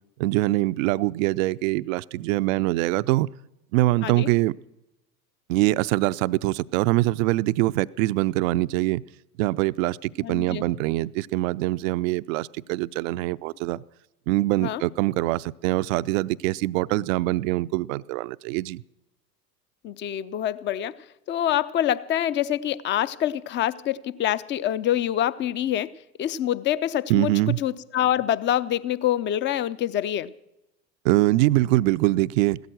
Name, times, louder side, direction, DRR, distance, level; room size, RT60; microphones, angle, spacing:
voice 1, 0.2-3.3 3.7-4.5 5.5-9.0 9.4-13.8 14.3-18.8 27.1-27.6 31.0-32.6, right 18 dB, 55° right, 0.5 m, -23 dB
voice 2, 10.2-10.6 14.6-14.8 19.8-21.0 21.3-25.9 26.2-27.3 27.6-30.3, left 11 dB, 25° left, 0.5 m, -26 dB
16.0 x 13.0 x 6.3 m
hypercardioid pair, 85°, 50 cm